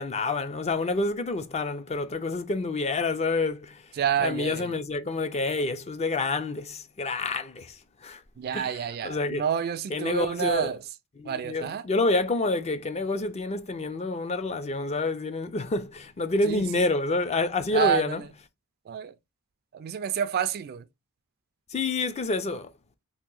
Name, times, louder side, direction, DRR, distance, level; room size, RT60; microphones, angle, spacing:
voice 1, 0.0-3.8 4.2-7.8 8.0-8.2 8.5-8.8 9.0-9.4 9.9-10.7 11.2-18.2 21.7-22.7, left 3 dB, 30° left, 0.4 m, -28 dB
voice 2, 4.0-4.7 8.4-10.8 11.3-11.8 16.4-16.9 17.7-18.3 18.9-19.1 19.7-20.9, right 8 dB, 45° right, 0.3 m, -29 dB
2.9 x 2.7 x 3.7 m
head